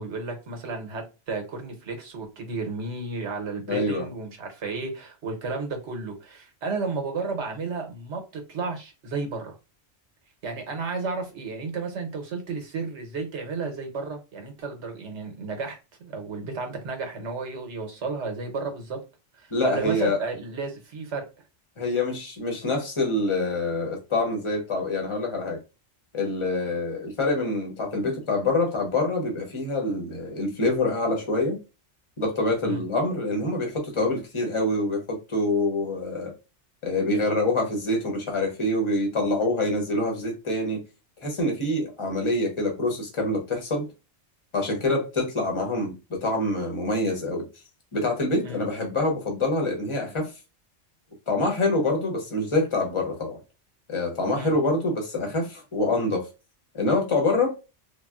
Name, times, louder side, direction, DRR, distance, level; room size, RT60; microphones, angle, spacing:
voice 1, 0.0-9.6 10.4-19.0 19.3-21.3 32.6-32.8 48.4-48.6 54.3-54.5, right 4 dB, 75° right, 1.1 m, -33 dB
voice 2, 3.7-4.0 19.5-20.2 21.8-25.6 26.1-31.6 32.2-36.3 36.8-40.8 41.2-43.8 44.5-47.5 47.9-50.3 51.3-53.3 53.9-56.3 56.7-57.6, left 2 dB, 30° left, 0.9 m, -26 dB
3.3 x 2.3 x 2.3 m
omnidirectional pair, 1.2 m